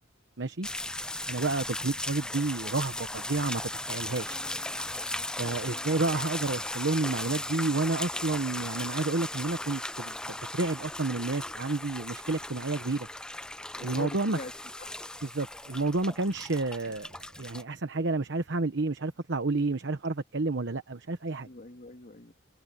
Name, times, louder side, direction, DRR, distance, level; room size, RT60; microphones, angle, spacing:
voice 1, 0.4-0.7 1.3-4.4 5.4-13.1 13.8-14.4 15.2-21.5, right 3 dB, 60° right, 1.0 m, -30 dB
sound 1, 0.6-17.6, left 1 dB, 5° left, 0.4 m, -37 dB
voice 2, 4.3-6.0 12.4-12.7 13.8-14.5 14.8-14.9 19.5-19.7 21.4-22.3, left 2 dB, 40° left, 2.0 m, -45 dB
head